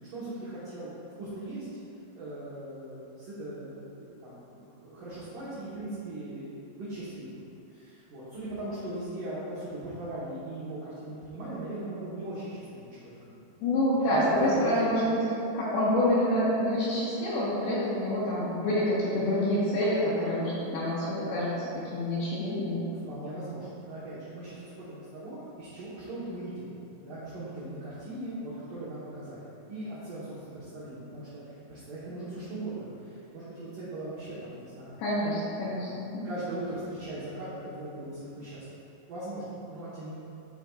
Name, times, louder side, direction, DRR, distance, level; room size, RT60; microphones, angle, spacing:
voice 1, 0.1-0.9 1.2-1.7 2.2-7.3 7.7-13.6 13.9-14.1 14.3-14.9 23.1-26.7 27.0-35.0 35.5-35.9 36.2-38.8 39.1-40.1, right 1 dB, 75° right, -10 dB, 1.9 m, -39 dB
voice 2, 13.6-15.0 15.5-22.8 35.0-36.3, left 1 dB, 75° left, -10 dB, 3.1 m, -27 dB
12.0 x 5.1 x 2.4 m, 2.7 s
omnidirectional pair, 5.6 m